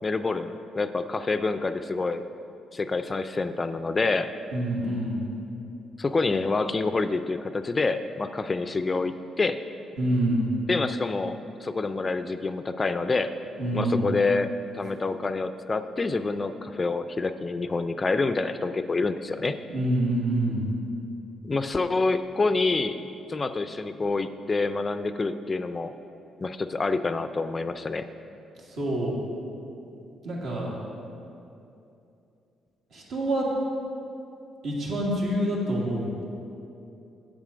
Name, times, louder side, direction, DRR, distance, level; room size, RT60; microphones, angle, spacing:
voice 1, 0.0-2.2 2.7-4.3 6.0-9.6 10.7-13.3 13.7-19.5 21.4-25.9 26.4-28.1, left 3 dB, 30° left, 11 dB, 0.3 m, -27 dB
voice 2, 4.5-5.2 10.0-10.5 13.6-14.1 19.7-20.7 28.7-29.2 30.2-30.8 32.9-33.5 34.6-36.1, right 1 dB, 75° right, -4 dB, 2.0 m, -26 dB
7.4 x 7.2 x 5.0 m, 2.7 s
cardioid pair, 90°, 0 cm